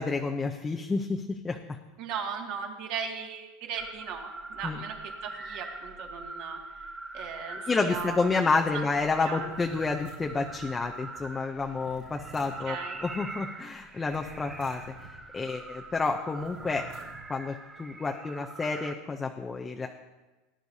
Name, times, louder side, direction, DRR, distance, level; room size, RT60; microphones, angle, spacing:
voice 1, 0.0-1.8 4.6-4.8 7.7-16.9 17.3-19.9, left 4 dB, 15° left, 3 dB, 0.6 m, -30 dB
voice 2, 2.0-6.6 7.1-8.3 8.7-8.9 9.3-9.5 12.7-13.0, right 6 dB, 55° right, 1 dB, 2.0 m, -37 dB
sound 1, 3.8-18.9, right 3 dB, 15° right, 0.8 m, -43 dB
sound 2, 9.5-10.7 11.8-12.7 14.0-15.2 16.4-17.3, right 4 dB, 75° right, 3.7 m, -50 dB
19.0 x 10.0 x 2.7 m, 1.2 s
supercardioid pair, 150°, 0 cm